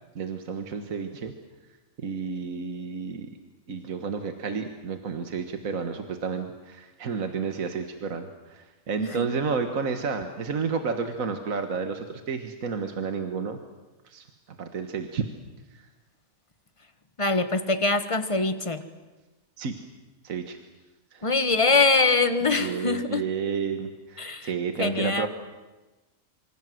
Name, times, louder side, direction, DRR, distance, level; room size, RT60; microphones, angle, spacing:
voice 1, 0.2-1.3 2.0-3.3 3.7-13.6 14.0-14.2 14.6-15.2 15.7-15.9 19.6-19.8 20.2-20.6 21.1-21.3 22.4-25.3, right 5 dB, 65° right, 6 dB, 1.9 m, -31 dB
voice 2, 17.2-18.9 21.2-23.2 24.2-24.5 24.8-25.3, left 3 dB, 20° left, 9 dB, 1.5 m, -23 dB
27.5 x 25.5 x 7.8 m, 1.1 s
omnidirectional pair, 1.5 m